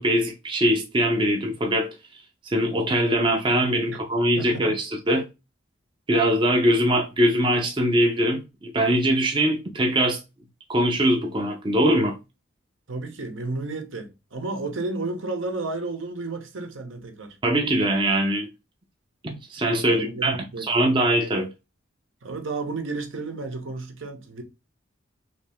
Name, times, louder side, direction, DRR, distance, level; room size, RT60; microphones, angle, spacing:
voice 1, 0.0-1.9 2.4-5.2 6.1-10.2 10.7-12.2 17.4-18.5 19.2-21.5, equal, 25° right, 0.5 m, -22 dB
voice 2, 4.4-4.7 12.9-17.4 19.8-20.7 22.2-24.4, right 3 dB, 75° right, 1.0 m, -32 dB
3.3 x 2.8 x 3.4 m
head